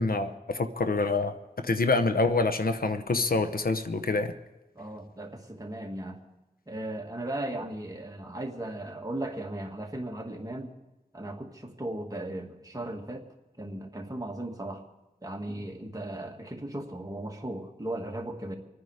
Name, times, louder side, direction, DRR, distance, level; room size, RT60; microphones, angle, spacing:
voice 1, 0.0-1.3 1.6-4.3, left 3 dB, 70° left, 8 dB, 0.9 m, -26 dB
voice 2, 4.8-6.2 6.7-10.7 11.1-13.3 13.6-14.8 15.2-18.5, right 1 dB, 20° right, 1 dB, 2.2 m, -37 dB
26.5 x 9.5 x 5.0 m, 1.0 s
wide cardioid pair, 55°, 16 cm